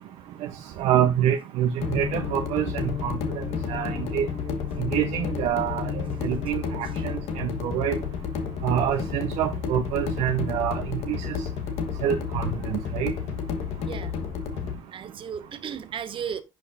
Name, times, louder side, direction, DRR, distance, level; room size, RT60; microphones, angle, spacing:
voice 1, 0.8-4.3 4.8-5.9 6.2-8.0 8.6-11.4 12.0-13.1, right 10 dB, 65° right, 0.8 m, -26 dB
sound 1, 1.8-14.8, left 6 dB, 65° left, 1.3 m, -31 dB
voice 2, 13.9-14.2 14.9-16.4, right 7 dB, 45° right, 1.3 m, -34 dB
10.5 x 5.3 x 2.6 m
hypercardioid pair, 65°, 12 cm